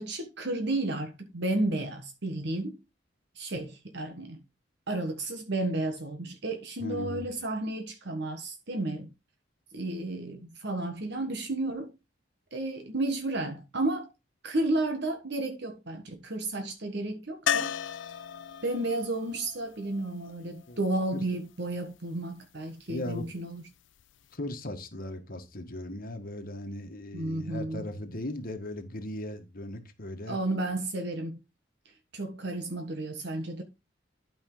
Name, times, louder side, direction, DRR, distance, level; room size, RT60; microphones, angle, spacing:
voice 1, 0.0-2.8 3.3-4.4 4.9-9.1 9.7-11.9 12.5-14.1 14.4-17.7 18.6-23.6 27.1-27.9 30.3-31.4 32.1-33.6, right 2 dB, 60° right, 1.4 m, -32 dB
voice 2, 6.8-7.3 20.7-20.8 21.1-21.2 22.9-23.3 24.3-30.4, left 1 dB, 50° left, 1.6 m, -38 dB
sound 1, 17.5-21.3 24.0-24.1 24.3-24.4, left 8 dB, 70° left, 0.5 m, -35 dB
12.0 x 5.5 x 3.9 m
head